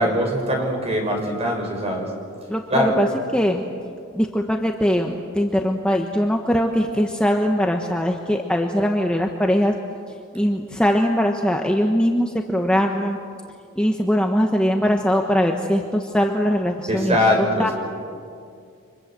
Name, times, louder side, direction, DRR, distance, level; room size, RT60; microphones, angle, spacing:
voice 1, 0.0-2.1 2.7-2.9 16.9-17.7, equal, 30° right, 1 dB, 6.3 m, -21 dB
voice 2, 2.5-3.1 3.3-3.6 4.1-9.8 10.3-13.2 13.8-17.7, equal, 5° left, 2 dB, 1.2 m, -21 dB
30.0 x 26.0 x 7.8 m, 2.3 s
head